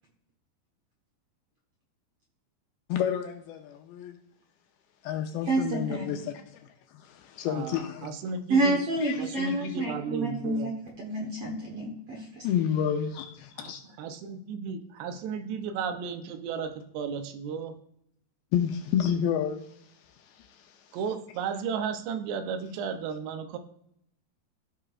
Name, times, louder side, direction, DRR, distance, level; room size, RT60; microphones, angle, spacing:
voice 1, 2.9-4.2 5.0-6.7 7.0-8.1 9.0-9.7 12.4-13.8 18.5-19.7 20.2-20.8, left 9 dB, 80° left, 2.4 m, -30 dB
voice 2, 5.5-6.2 8.5-10.7 11.0-12.2, right 2 dB, 60° right, 1.5 m, -28 dB
voice 3, 7.5-8.8 9.2-10.7 13.6-13.7 14.0-17.8 20.9-23.6, right 6 dB, 85° right, 3.0 m, -34 dB
15.5 x 5.8 x 2.5 m
omnidirectional pair, 4.8 m